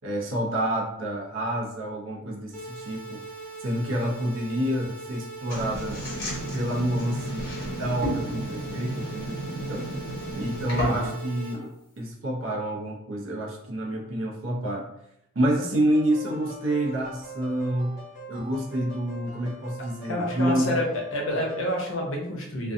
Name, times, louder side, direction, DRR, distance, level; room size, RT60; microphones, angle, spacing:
voice 1, 0.0-3.2 3.6-6.0 6.5-9.4 9.7-9.9 10.3-14.9 15.3-20.8, right 1 dB, 65° right, 0 dB, 0.6 m, -28 dB
sound 1, 2.5-11.5, right 3 dB, 5° left, 0.6 m, -40 dB
sound 2, 5.5-11.2, equal, 50° left, 1.1 m, -32 dB
voice 2, 10.8-11.1 20.1-22.7, left 1 dB, 65° left, 0 dB, 0.7 m, -28 dB
sound 3, 15.9-21.9, right 2 dB, 20° right, 0.8 m, -43 dB
2.4 x 2.2 x 2.6 m, 0.79 s
head